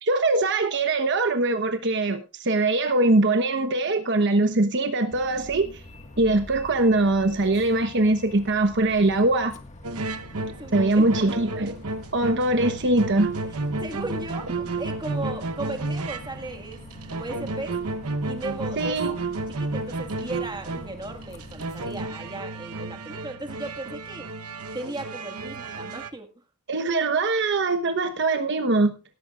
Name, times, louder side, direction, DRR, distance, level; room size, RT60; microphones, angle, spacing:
voice 1, 0.0-5.8 6.2-9.5 10.7-11.8 12.1-13.3 18.8-19.1 26.7-29.0, right 2 dB, 55° right, 8 dB, 1.1 m, -22 dB
Bus, 5.1-22.0, left 1 dB, 30° left, 1.7 m, -45 dB
sound 1, 9.8-26.1, right 3 dB, 90° right, 1.0 m, -32 dB
voice 2, 10.4-11.0 11.8-11.9 13.8-16.8 17.1-17.8 18.2-19.0 19.6-24.3 24.7-26.3, right 2 dB, 20° right, 5 dB, 1.8 m, -36 dB
17.5 x 14.0 x 2.5 m, 0.29 s
head